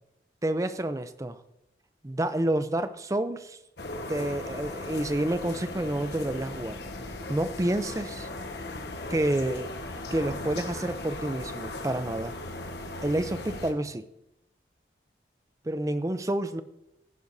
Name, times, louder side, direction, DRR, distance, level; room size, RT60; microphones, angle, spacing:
voice 1, 0.4-1.4 2.0-3.6 4.1-6.8 7.3-8.3 9.1-9.7 10.1-12.4 13.0-14.1 15.6-16.6, right 1 dB, 20° right, 11 dB, 0.5 m, -29 dB
sound 1, 3.8-13.7, left 2 dB, 70° left, 1.3 m, -38 dB
14.5 x 10.5 x 2.7 m, 0.88 s
head